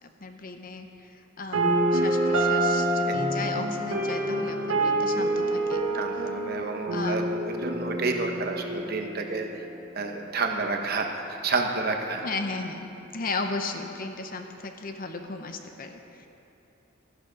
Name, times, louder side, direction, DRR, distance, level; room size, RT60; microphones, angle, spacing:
voice 1, 0.0-1.1 1.4-6.0 6.9-7.2 12.2-16.3, left 3 dB, 45° left, 6 dB, 0.8 m, -35 dB
sound 1, 1.5-9.5, right 1 dB, 80° right, 1.4 m, -27 dB
voice 2, 5.9-9.5 9.9-11.1 11.4-12.2, right 3 dB, 50° right, 3 dB, 1.1 m, -29 dB
13.5 x 11.0 x 5.2 m, 2.9 s
head